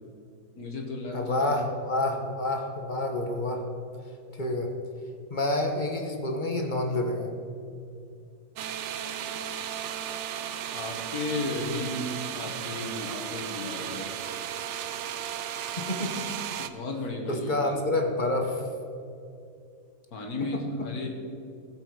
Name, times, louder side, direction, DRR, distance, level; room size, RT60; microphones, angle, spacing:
voice 1, 0.6-1.6 10.7-14.1 16.6-17.8 20.1-21.1, left 2 dB, 85° left, 2 dB, 2.0 m, -34 dB
voice 2, 1.1-3.7 4.3-4.7 5.3-7.3 15.8-16.3 17.3-18.6 20.4-20.6, left 2 dB, 35° left, 3 dB, 1.2 m, -28 dB
sound 1, 8.6-16.7, right 9 dB, 65° right, 0.8 m, -35 dB
17.0 x 7.7 x 4.7 m, 2.5 s
omnidirectional pair, 1.6 m